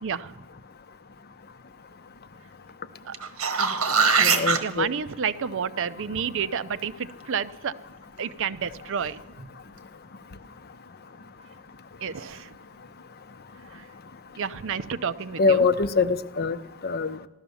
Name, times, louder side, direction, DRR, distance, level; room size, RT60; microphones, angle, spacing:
voice 1, 0.0-0.4 3.0-3.1 4.6-7.7 8.2-9.2 12.0-12.5 13.7-13.9 14.4-15.7, right 7 dB, 65° right, 14 dB, 0.6 m, -30 dB
sound 1, 3.1-4.6 9.4-9.5, right 5 dB, 90° right, 1.4 m, -21 dB
voice 2, 4.2-4.9 15.4-16.6 16.8-17.2, left 4 dB, 50° left, 12 dB, 0.7 m, -23 dB
15.5 x 12.5 x 7.0 m, 1.1 s
head